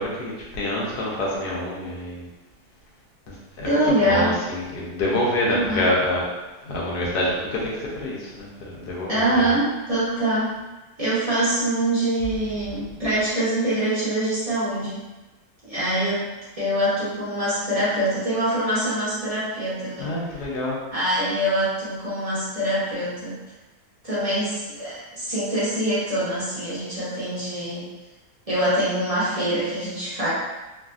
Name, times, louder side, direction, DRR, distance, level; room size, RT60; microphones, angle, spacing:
voice 1, 0.0-2.3 3.3-6.2 6.6-9.5 20.0-20.8, left 1 dB, 80° left, -4 dB, 1.3 m, -27 dB
voice 2, 3.6-4.4 5.5-5.8 9.1-10.6 11.0-15.0 15.6-16.2 16.6-20.1 20.9-23.4 24.0-27.9 28.5-30.3, right 1 dB, 30° right, -10 dB, 0.7 m, -24 dB
3.1 x 2.5 x 2.4 m, 1.1 s
omnidirectional pair, 1.7 m